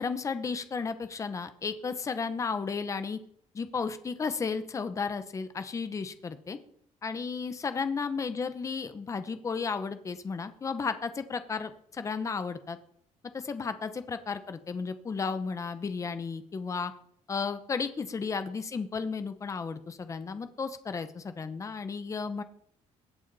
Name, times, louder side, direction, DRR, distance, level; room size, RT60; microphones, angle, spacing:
voice 1, 0.0-3.2 3.5-6.6 7.0-12.8 13.3-16.9 17.3-22.4, left 5 dB, 25° left, 10 dB, 0.9 m, -33 dB
22.0 x 8.3 x 4.1 m, 0.67 s
cardioid pair, 165°, 13 cm